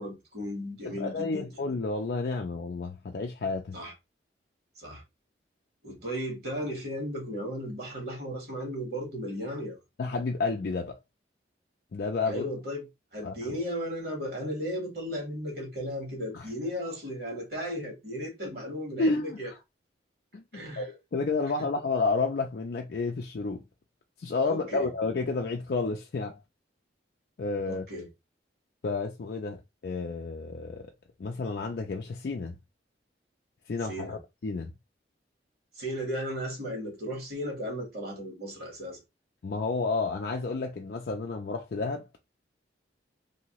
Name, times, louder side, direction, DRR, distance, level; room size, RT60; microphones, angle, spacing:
voice 1, 0.0-1.5 3.7-3.9 4.7-5.0 5.8-9.8 12.3-12.9 13.1-19.5 20.5-20.8 24.5-24.9 27.7-28.1 33.9-34.2 35.7-39.0, equal, 55° right, 1.5 m, -35 dB
voice 2, 0.9-3.8 10.0-11.0 11.9-12.4 13.2-13.5 16.3-16.5 19.0-19.4 20.3-20.4 20.8-23.6 24.2-26.4 27.4-27.8 28.8-30.9 31.2-32.6 33.7-34.7 39.4-42.1, left 3 dB, 55° left, 0.4 m, -31 dB
2.9 x 2.6 x 2.9 m
head